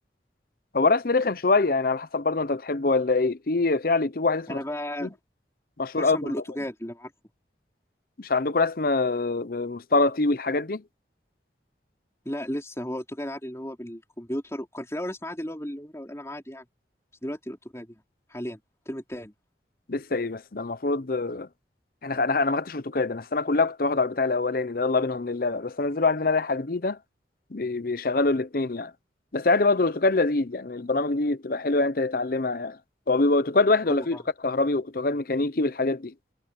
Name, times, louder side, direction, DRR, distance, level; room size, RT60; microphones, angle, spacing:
voice 1, 0.7-4.6 5.0-5.1 5.8-6.3 8.2-10.8 19.9-21.5 22.0-27.0 27.5-28.9 29.3-32.8 33.1-34.2 34.4-36.1, left 3 dB, 50° left, 0.7 m, -24 dB
voice 2, 4.5-5.2 5.9-7.1 12.3-16.6 17.2-18.0 18.3-18.6 18.9-19.3 33.9-34.2, equal, 15° left, 4.0 m, -34 dB
head